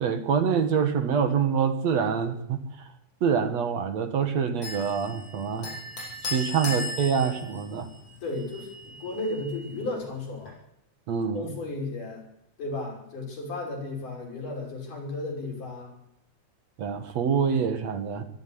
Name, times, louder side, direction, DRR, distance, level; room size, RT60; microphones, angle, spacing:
voice 1, 0.0-2.6 3.2-5.7 6.2-7.9 11.1-11.5 16.8-18.2, right 6 dB, 60° right, 8 dB, 2.7 m, -25 dB
sound 1, 4.6-10.5, left 2 dB, 50° left, 8.6 m, -38 dB
voice 2, 8.2-10.5 11.3-12.3 12.6-15.9, left 2 dB, 75° left, 0 dB, 7.7 m, -34 dB
22.5 x 12.0 x 10.0 m, 0.79 s
omnidirectional pair, 3.6 m